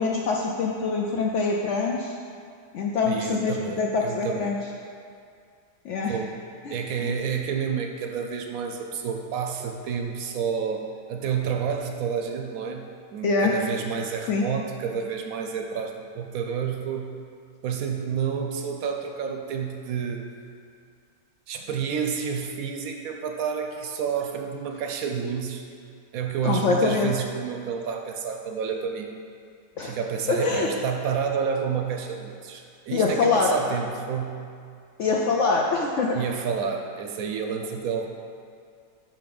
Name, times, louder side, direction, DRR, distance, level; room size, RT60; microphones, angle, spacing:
voice 1, 0.0-2.1 2.7-4.6 5.8-6.2 6.7-7.1 13.2-13.5 14.3-14.4 26.4-27.1 29.8-30.0 30.3-30.7 32.9-33.6 35.0-36.2, left 4 dB, 70° left, -1 dB, 0.7 m, -24 dB
voice 2, 3.0-4.6 6.1-6.4 6.7-17.1 17.6-20.3 21.5-25.6 26.1-29.1 29.8-34.4 36.1-38.1, right 6 dB, 70° right, 4 dB, 0.9 m, -29 dB
5.7 x 5.3 x 5.2 m, 2.3 s
omnidirectional pair, 1.7 m